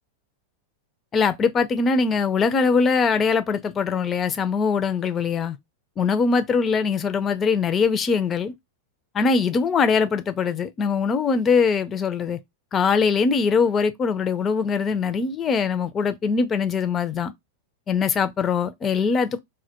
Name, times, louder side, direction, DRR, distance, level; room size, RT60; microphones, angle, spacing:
voice 1, 1.1-5.6 6.0-8.5 9.1-12.4 12.7-17.3 17.9-19.4, left 5 dB, 25° left, 0.4 m, -22 dB
2.1 x 2.1 x 2.8 m
hypercardioid pair, 115°, 0 cm